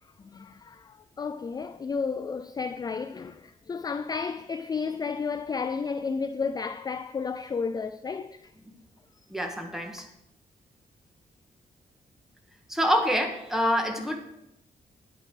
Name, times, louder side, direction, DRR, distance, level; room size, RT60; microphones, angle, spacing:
voice 1, 0.2-8.5, left 5 dB, 25° left, 0.3 m, -32 dB
voice 2, 9.3-10.1 12.7-14.2, equal, 5° right, 1.7 m, -26 dB
9.9 x 9.3 x 5.0 m
wide cardioid pair, 130°, 15 cm